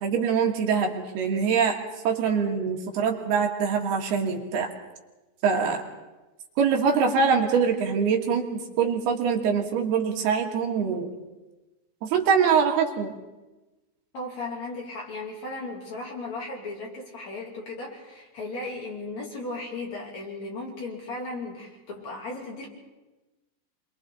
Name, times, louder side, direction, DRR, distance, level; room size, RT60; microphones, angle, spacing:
voice 1, 0.0-1.8 2.1-4.7 5.4-5.8 6.6-11.1 12.0-13.1, right 6 dB, 65° right, 2 dB, 3.4 m, -24 dB
voice 2, 14.1-22.7, left 2 dB, 40° left, -2 dB, 3.8 m, -36 dB
27.0 x 23.0 x 4.2 m, 1.1 s
omnidirectional pair, 5.3 m